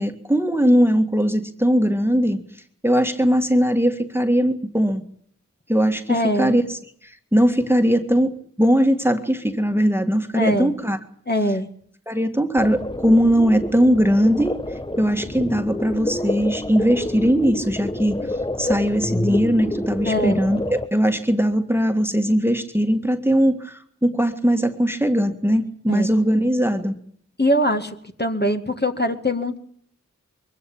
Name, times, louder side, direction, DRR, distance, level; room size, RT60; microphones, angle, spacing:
voice 1, 0.0-2.4 2.8-5.0 5.7-11.0 12.1-14.6 15.0-27.0, equal, 10° right, 7 dB, 1.9 m, -20 dB
voice 2, 6.1-6.6 10.3-10.7 11.3-11.7 20.1-20.4 25.9-26.1 27.4-29.6, left 1 dB, 35° left, 5 dB, 2.0 m, -22 dB
sound 1, 12.6-20.9, left 1 dB, 15° left, 1.1 m, -28 dB
23.0 x 16.5 x 8.6 m, 0.63 s
wide cardioid pair, 50°, 30 cm